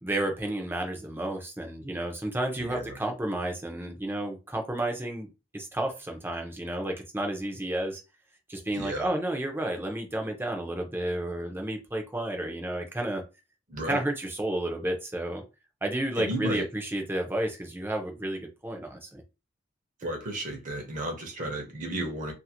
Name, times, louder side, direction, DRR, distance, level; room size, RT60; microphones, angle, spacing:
voice 1, 0.0-5.3 5.5-8.0 8.5-13.2 13.8-15.4 15.8-19.2, right 1 dB, 10° right, 0.6 m, -31 dB
voice 2, 8.7-9.1 13.7-14.0 16.2-16.6 20.0-22.3, right 1 dB, 45° right, 0.8 m, -33 dB
2.6 x 2.5 x 2.8 m
head